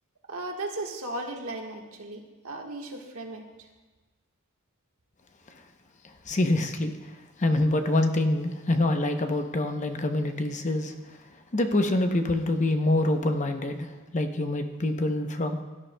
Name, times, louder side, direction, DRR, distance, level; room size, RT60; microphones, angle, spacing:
voice 1, 0.3-3.7, right 2 dB, 90° right, 1 dB, 1.4 m, -36 dB
voice 2, 6.3-6.9 7.4-10.9 11.5-15.6, left 1 dB, 35° left, 6 dB, 0.7 m, -25 dB
16.5 x 10.5 x 2.2 m, 1.3 s
head